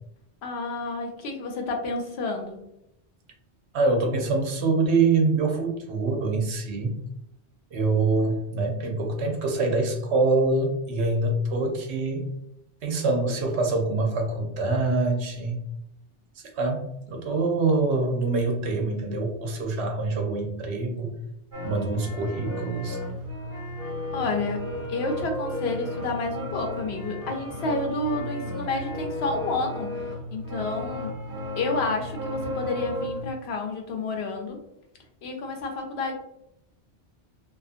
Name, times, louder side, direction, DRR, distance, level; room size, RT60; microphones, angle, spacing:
voice 1, 0.4-2.6 24.1-24.6 24.9-30.0 30.3-31.1 31.6-34.6 35.2-36.1, left 3 dB, 70° left, 2 dB, 0.9 m, -30 dB
voice 2, 3.7-7.0 7.7-12.3 12.8-15.6 16.4-21.1 21.6-23.0, right 3 dB, 75° right, 3 dB, 0.9 m, -25 dB
sound 1, 21.5-33.3, left 1 dB, 30° right, 1.1 m, -34 dB
2.4 x 2.4 x 2.4 m, 0.81 s
omnidirectional pair, 1.1 m